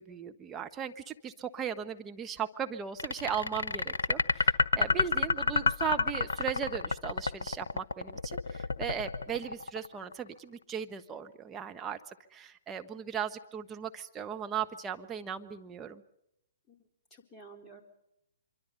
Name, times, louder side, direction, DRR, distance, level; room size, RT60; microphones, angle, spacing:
voice 1, 0.0-12.0 12.3-16.0, right 8 dB, 15° right, 6 dB, 1.2 m, -37 dB
sound 1, 3.0-10.1, left 4 dB, 70° left, 1.0 m, -29 dB
voice 2, 4.7-5.2 16.7-16.8 17.1-17.8, equal, 15° left, 1 dB, 3.8 m, -51 dB
25.0 x 24.0 x 5.4 m, 0.84 s
figure-of-eight pair, 120°, 0 cm